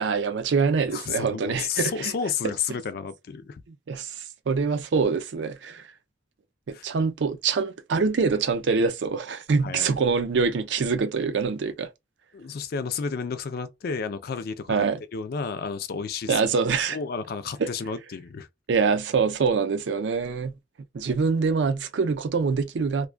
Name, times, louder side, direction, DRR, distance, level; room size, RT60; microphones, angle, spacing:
voice 1, 0.0-2.1 2.4-2.5 3.9-5.9 6.7-11.9 14.7-15.0 16.3-17.0 17.6-17.7 18.7-20.5 20.9-23.1, right 5 dB, 70° right, 0.4 m, -25 dB
voice 2, 0.9-3.6 6.7-6.9 9.6-9.9 12.3-16.4 16.9-18.5, left 6 dB, 55° left, 0.4 m, -31 dB
2.3 x 2.2 x 2.4 m
head